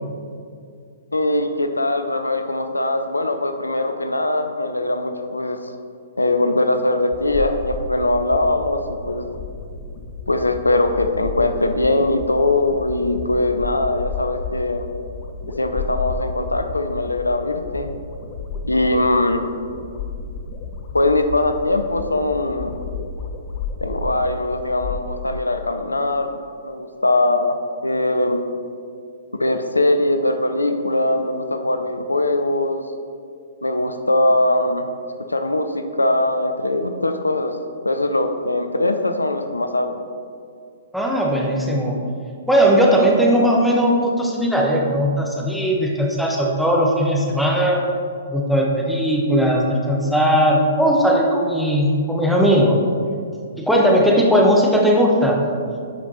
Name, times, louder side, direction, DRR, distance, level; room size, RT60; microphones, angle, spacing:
voice 1, 1.1-5.7 6.2-9.3 10.3-14.9 15.6-17.9 18.6-19.4 20.9-22.7 23.8-27.6 27.8-28.4 29.4-32.8 33.6-34.9 35.3-37.6 37.8-39.9, left 2 dB, 80° left, 7 dB, 0.6 m, -21 dB
sound 1, 7.1-25.0, left 4 dB, 35° left, 0.8 m, -32 dB
voice 2, 40.9-42.0 42.5-47.8 48.3-52.8 53.6-55.4, equal, ahead, -2 dB, 1.1 m, -18 dB
10.0 x 5.1 x 4.1 m, 2.3 s
figure-of-eight pair, 120°, 0 cm